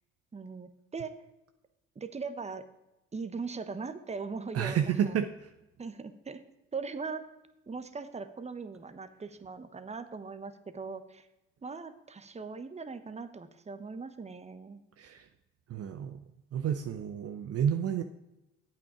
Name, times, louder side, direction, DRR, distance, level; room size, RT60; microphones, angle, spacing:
voice 1, 0.3-1.1 2.0-2.6 3.1-5.2 5.8-6.4 6.7-7.2 7.7-11.3 11.6-14.8, right 4 dB, 20° right, 11 dB, 1.0 m, -40 dB
voice 2, 4.5-5.5 15.0-15.3 15.7-16.2 16.5-18.0, right 8 dB, 45° right, 9 dB, 0.7 m, -30 dB
8.6 x 8.6 x 4.9 m, 0.93 s
hypercardioid pair, 55°, 35 cm